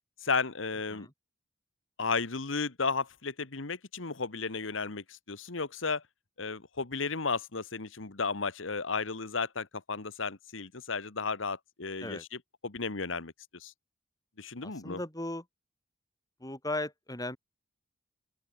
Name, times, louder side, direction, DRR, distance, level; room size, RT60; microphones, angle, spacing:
voice 1, 0.2-1.1 2.0-6.0 6.4-12.2 12.6-13.7 14.4-15.0, left 4 dB, 80° left, 1.5 m, -34 dB
voice 2, 14.6-15.4 16.4-17.4, left 1 dB, 20° left, 5.4 m, -37 dB
open air
head